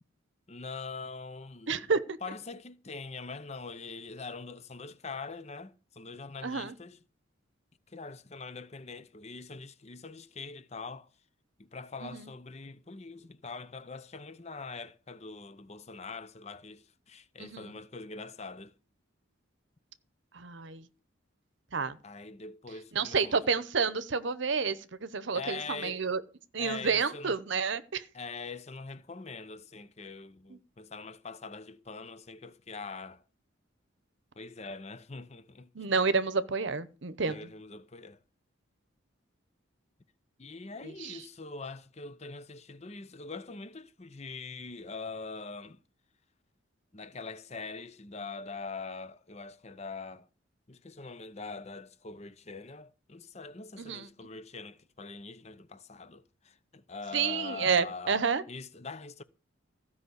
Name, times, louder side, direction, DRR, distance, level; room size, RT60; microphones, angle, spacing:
voice 1, 0.5-1.8 2.2-7.0 7.9-11.1 11.6-18.7 22.0-23.4 25.3-26.0 26.6-27.3 28.1-33.2 34.4-35.7 37.2-38.2 40.4-45.8 46.9-50.3 50.7-58.2 58.5-59.2, left 4 dB, 30° left, 0.7 m, -43 dB
voice 2, 1.7-2.2 6.4-6.7 12.0-12.3 17.4-17.8 20.3-20.9 21.7-22.0 22.9-26.2 26.5-28.1 30.5-30.6 35.7-37.4 40.8-41.2 53.8-54.1 57.1-58.4, right 5 dB, 65° right, 0.8 m, -30 dB
15.5 x 5.6 x 8.0 m
head